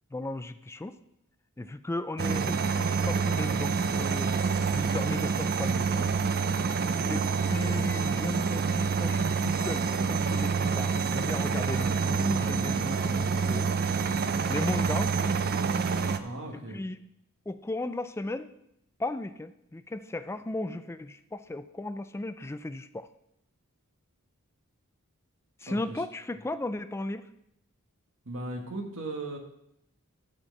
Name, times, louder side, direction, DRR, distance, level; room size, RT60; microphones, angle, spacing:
voice 1, 0.1-1.0 1.6-6.1 7.1-13.7 14.5-15.3 16.5-17.0 17.5-18.5 19.0-23.1 25.6-27.3, left 2 dB, 10° left, 11 dB, 0.3 m, -36 dB
sound 1, 2.2-16.2, right 5 dB, 45° right, 0.5 m, -27 dB
voice 2, 16.2-16.8 25.7-26.0 28.2-29.4, right 2 dB, 65° right, 2 dB, 1.6 m, -37 dB
11.5 x 4.4 x 6.6 m, 0.79 s
head